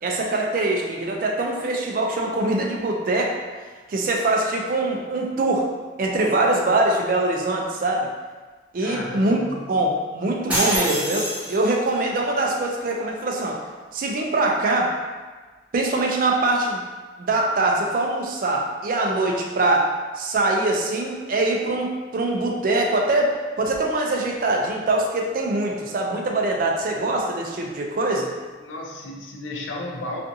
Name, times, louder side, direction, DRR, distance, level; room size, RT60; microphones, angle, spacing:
voice 1, 0.0-3.4 3.9-5.7 6.0-8.1 8.7-9.4 9.7-13.6 13.9-15.0 15.7-16.8 17.2-28.3, right 2 dB, 45° right, 0 dB, 0.3 m, -23 dB
voice 2, 8.8-9.5 28.6-30.2, left 2 dB, 75° left, 0 dB, 0.4 m, -33 dB
sound 1, 10.5-12.0, equal, 5° right, 0.9 m, -25 dB
2.5 x 2.5 x 2.6 m, 1.3 s
head